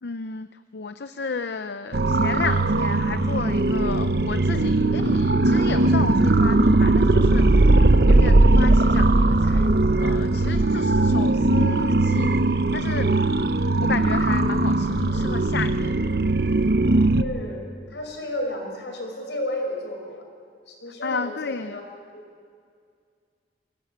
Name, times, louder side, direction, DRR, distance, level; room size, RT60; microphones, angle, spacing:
voice 1, 0.0-9.7 10.0-13.1 13.8-16.0 21.0-21.8, left 4 dB, 70° left, 11 dB, 0.6 m, -33 dB
sound 1, 1.9-17.2, right 2 dB, 60° right, 0.8 m, -19 dB
voice 2, 17.1-20.2 20.7-21.8 22.1-22.2, left 1 dB, 85° left, 2 dB, 5.6 m, -32 dB
23.5 x 17.5 x 8.7 m, 2.2 s
head